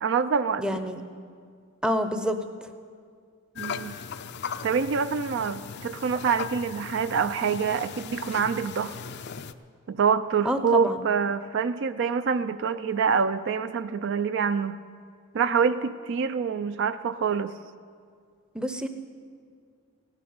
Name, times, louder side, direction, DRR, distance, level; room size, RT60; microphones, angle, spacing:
voice 1, 0.0-0.6 3.6-4.0 4.6-9.0 9.9-14.8 15.3-17.5, right 6 dB, 55° right, 12 dB, 0.4 m, -26 dB
voice 2, 0.6-1.0 1.8-2.4 10.4-11.0 18.5-18.9, equal, 5° right, 8 dB, 0.6 m, -27 dB
sound 1, 3.6-9.5, left 6 dB, 50° left, 0.4 m, -38 dB
16.0 x 7.4 x 9.5 m, 2.2 s
head